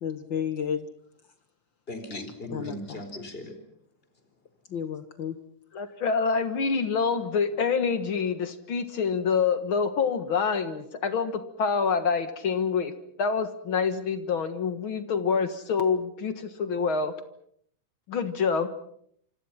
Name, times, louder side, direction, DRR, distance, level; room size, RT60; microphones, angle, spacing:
voice 1, 0.0-0.9 2.1-3.0 4.7-5.4, left 8 dB, 65° left, 10 dB, 1.2 m, -32 dB
voice 2, 1.9-3.6, left 1 dB, 15° left, 8 dB, 4.3 m, -38 dB
voice 3, 5.7-12.9 13.2-17.1 18.1-18.7, left 5 dB, 50° left, 10 dB, 1.8 m, -26 dB
28.0 x 25.5 x 5.8 m, 0.66 s
omnidirectional pair, 3.9 m